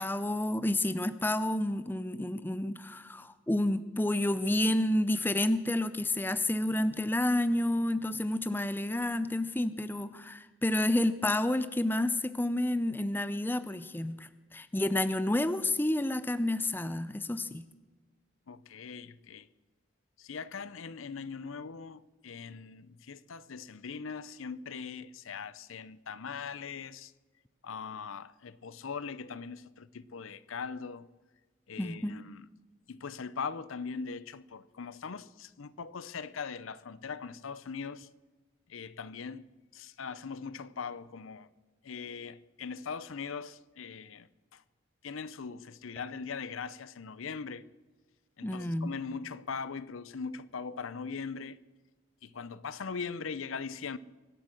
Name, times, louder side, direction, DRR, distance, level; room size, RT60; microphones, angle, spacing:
voice 1, 0.0-17.6 31.8-32.2 48.4-48.9, left 1 dB, 10° left, 0.5 m, -30 dB
voice 2, 18.5-19.5 20.2-27.1 27.6-31.1 31.7-32.5 32.9-38.1 38.7-39.5 39.7-41.5 41.8-44.6 45.0-47.6 48.4-51.6 52.2-54.0, left 5 dB, 75° left, 0.6 m, -40 dB
24.0 x 8.2 x 6.4 m
head